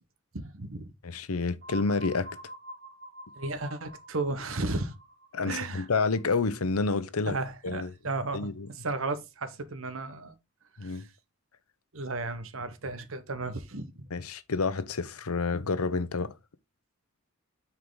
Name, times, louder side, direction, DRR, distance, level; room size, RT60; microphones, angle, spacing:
voice 1, 0.3-0.9 3.4-5.0 5.4-5.9 7.3-10.3 10.8-11.1 11.9-14.1, right 3 dB, 70° right, 1.1 m, -34 dB
voice 2, 1.0-2.3 5.3-7.4 7.6-7.9 8.3-8.7 10.8-11.1 14.1-16.3, left 4 dB, 90° left, 0.8 m, -29 dB
sound 1, 1.6-7.3, equal, 45° right, 0.9 m, -48 dB
9.5 x 4.7 x 3.8 m
head